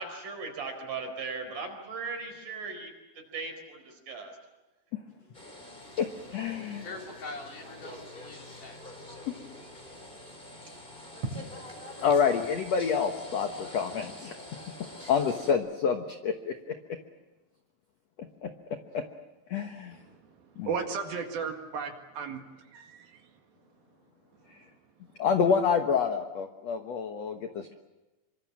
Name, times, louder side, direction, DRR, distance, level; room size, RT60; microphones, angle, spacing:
voice 1, 0.0-2.9 3.3-4.4 5.4-5.5, right 4 dB, 50° right, 5 dB, 5.9 m, -38 dB
sound 1, 5.3-15.5, left 1 dB, 10° left, 3.9 m, -46 dB
voice 2, 6.0-6.8 9.3-9.4 12.0-14.7 15.1-16.5 18.4-18.5 18.9-19.0 19.5-20.0 20.6-20.7 25.2-27.7, left 6 dB, 70° left, 5 dB, 1.6 m, -28 dB
voice 3, 6.8-8.9, left 3 dB, 50° left, 1 dB, 5.0 m, -43 dB
voice 4, 19.9-23.3, right 5 dB, 65° right, 4 dB, 3.6 m, -36 dB
26.0 x 25.0 x 7.5 m, 1.1 s
omnidirectional pair, 4.9 m